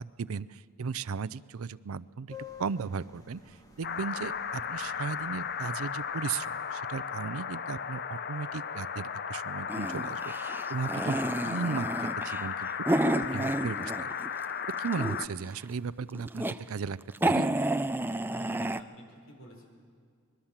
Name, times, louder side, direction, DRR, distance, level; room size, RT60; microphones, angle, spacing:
voice 1, 0.0-12.7 13.3-14.1 14.8-17.0 17.2-17.5, right 5 dB, 80° right, 19 dB, 0.5 m, -36 dB
sound 1, 2.3-7.3, left 6 dB, 15° left, 2.0 m, -52 dB
sound 2, 3.8-15.3, left 7 dB, 50° left, 0.7 m, -35 dB
sound 3, 9.7-14.3 14.6-15.5 16.0-16.6 16.9-17.0 17.1-18.8, right 1 dB, 10° right, 0.5 m, -30 dB
voice 2, 18.3-19.6, right 1 dB, 65° left, 2 dB, 5.1 m, -50 dB
25.0 x 21.0 x 7.3 m, 2.1 s
head